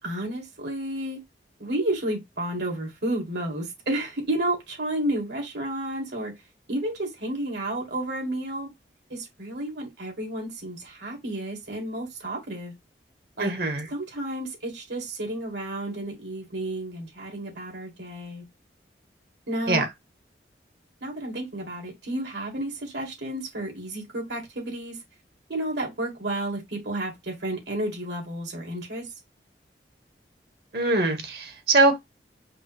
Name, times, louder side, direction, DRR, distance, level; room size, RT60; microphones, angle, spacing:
voice 1, 0.0-1.2 1.6-6.3 6.7-8.7 9.1-12.7 13.4-13.5 13.9-18.5 19.5-19.8 21.0-25.0 25.5-29.1, right 1 dB, 80° right, 2.2 m, -31 dB
voice 2, 13.4-13.9 19.7-19.9 30.7-32.0, right 2 dB, 60° right, 1.2 m, -22 dB
5.3 x 2.0 x 4.6 m
head